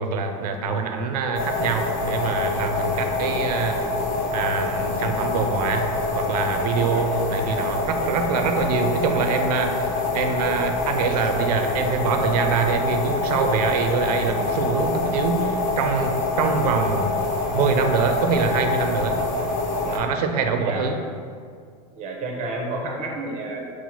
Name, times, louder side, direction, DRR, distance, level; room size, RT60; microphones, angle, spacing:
voice 1, 0.0-3.8 4.3-17.1 17.5-19.2 19.9-21.0, right 5 dB, 75° right, 5 dB, 0.5 m, -24 dB
sound 1, 1.3-20.0, left 3 dB, 55° left, 0.9 m, -25 dB
voice 2, 6.9-7.2 19.7-20.1 20.6-20.9 21.9-23.8, right 2 dB, 35° right, 0 dB, 0.7 m, -31 dB
4.1 x 2.1 x 4.4 m, 2.1 s
supercardioid pair, 130°, 20 cm